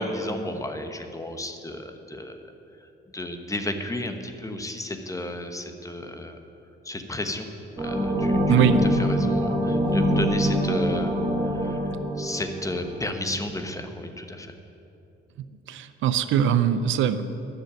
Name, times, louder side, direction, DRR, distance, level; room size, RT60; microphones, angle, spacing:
voice 1, 0.0-2.4 3.1-6.4 6.8-7.5 7.7-8.5 9.1-11.1 11.5-11.8 12.2-14.5, left 1 dB, 15° left, 7 dB, 1.1 m, -32 dB
sound 1, 7.8-13.1, equal, 15° right, 3.4 m, -24 dB
voice 2, 8.5-8.8 15.7-17.2, right 9 dB, 80° right, 12 dB, 0.6 m, -21 dB
12.0 x 6.5 x 8.9 m, 2.8 s
cardioid pair, 90°, 20 cm